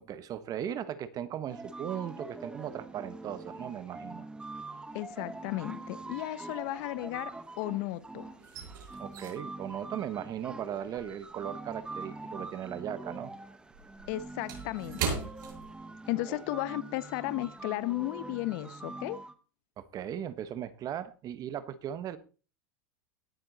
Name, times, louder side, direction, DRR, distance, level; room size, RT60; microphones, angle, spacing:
voice 1, 0.0-4.2 8.9-13.3 16.3-16.4 19.8-22.2, right 10 dB, 35° right, 1.3 m, -38 dB
sound 1, 1.5-19.3, right 2 dB, 10° right, 1.1 m, -44 dB
voice 2, 4.9-8.3 14.1-15.3 16.1-19.2, left 17 dB, 60° left, 1.0 m, -34 dB
sound 2, 5.0-5.5 5.8-7.8 8.1-12.7 13.0-16.3 16.6-16.8 17.3-17.6, right 5 dB, 75° right, 7.6 m, -40 dB
18.5 x 7.7 x 4.2 m
supercardioid pair, 130°, 11 cm